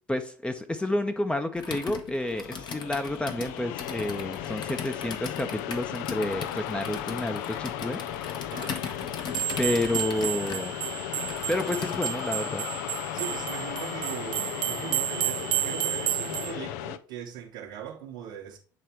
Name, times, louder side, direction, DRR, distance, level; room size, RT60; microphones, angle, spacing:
voice 1, 0.1-8.0 9.6-10.7 11.5-12.6, left 1 dB, 10° left, 0.7 m, -30 dB
Computer keyboard, 1.6-12.3, left 6 dB, 50° left, 1.1 m, -39 dB
sound 1, 2.2-17.0, left 11 dB, 70° left, 0.5 m, -36 dB
voice 2, 8.5-8.8 13.1-18.6, right 8 dB, 70° right, 1.1 m, -40 dB
sound 2, 9.3-16.5, right 16 dB, 50° right, 0.4 m, -32 dB
8.0 x 3.3 x 4.4 m
hypercardioid pair, 65°, 10 cm